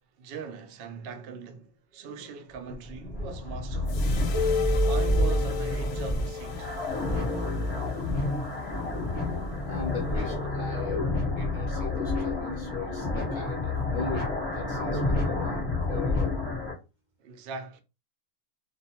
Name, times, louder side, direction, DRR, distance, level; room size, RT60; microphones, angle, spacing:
voice 1, 0.2-4.3 4.9-6.7 17.2-17.8, right 5 dB, 75° right, 0.5 m, -41 dB
sound 1, 2.5-16.7, left 1 dB, 20° left, 0.9 m, -29 dB
sound 2, 3.9-10.2, left 6 dB, 70° left, 0.9 m, -44 dB
sound 3, 4.3-7.9, left 5 dB, 20° right, 0.8 m, -32 dB
voice 2, 9.7-16.3, left 4 dB, 55° left, 0.5 m, -38 dB
2.4 x 2.2 x 2.7 m
omnidirectional pair, 1.5 m